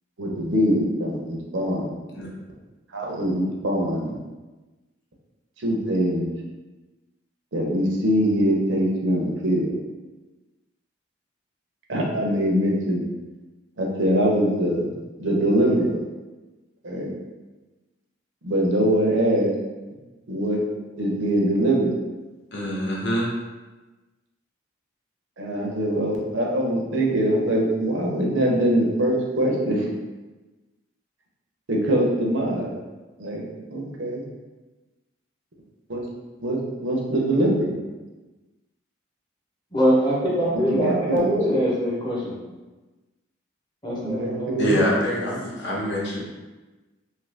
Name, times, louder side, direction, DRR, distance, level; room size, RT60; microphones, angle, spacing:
voice 1, 0.2-2.0 2.9-4.2 5.6-6.3 7.5-9.7 11.9-13.0 13.8-14.9 15.2-16.0 16.8-17.1 18.4-19.5 20.3-20.6 21.0-21.9 25.4-29.9 31.7-32.8 33.2-34.3 35.9-36.0 36.4-37.8 40.7-41.4 44.0-44.9, right 1 dB, 70° right, -2 dB, 0.7 m, -23 dB
voice 2, 22.5-23.3 44.6-46.2, equal, 60° left, -4 dB, 0.8 m, -25 dB
voice 3, 39.7-42.3 43.8-44.5, equal, 20° left, -6 dB, 0.8 m, -23 dB
2.7 x 2.5 x 3.3 m, 1.2 s
head